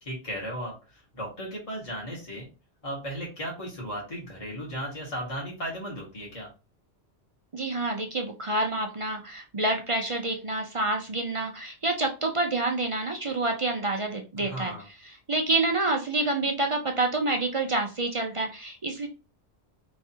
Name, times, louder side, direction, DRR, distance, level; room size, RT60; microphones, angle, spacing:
voice 1, 0.0-2.5 2.8-6.5 14.4-14.9, equal, 30° left, -3 dB, 1.4 m, -36 dB
voice 2, 7.5-14.7 15.3-19.1, right 2 dB, 40° right, 3 dB, 0.5 m, -28 dB
4.7 x 3.1 x 2.8 m, 0.31 s
omnidirectional pair, 1.2 m